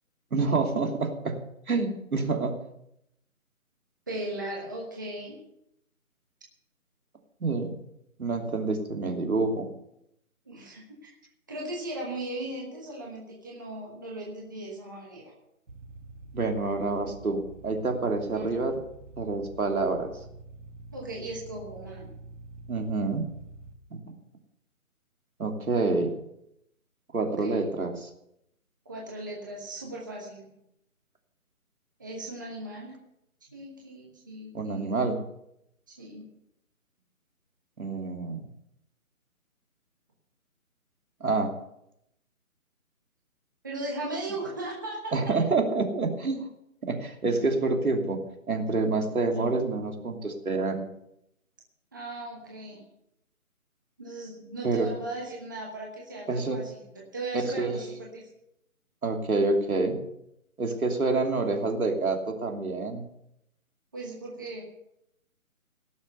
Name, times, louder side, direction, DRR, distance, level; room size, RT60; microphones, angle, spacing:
voice 1, 0.3-1.4 1.7-2.6 7.4-7.7 8.2-9.7 16.3-18.8 19.2-20.1 22.7-23.3 23.9-24.0 25.4-26.2 27.1-28.1 34.5-35.2 37.8-38.5 41.2-41.5 45.1-46.5 46.8-48.2 48.5-50.8 54.6-54.9 56.3-56.6 57.4-57.8 59.0-60.0 60.6-63.0, right 3 dB, 75° right, 3 dB, 2.9 m, -27 dB
voice 2, 4.1-5.4 10.5-11.1 11.5-15.3 18.3-18.6 20.9-22.1 27.2-27.7 28.8-30.6 32.0-32.9 33.5-35.0 35.9-36.3 43.6-45.2 51.9-52.8 54.0-58.2 63.9-64.6, right 1 dB, 15° right, -3 dB, 1.1 m, -37 dB
sound 1, 15.7-23.7, right 3 dB, 55° right, 2.1 m, -47 dB
17.5 x 6.7 x 6.7 m, 0.80 s
hypercardioid pair, 175°, 43 cm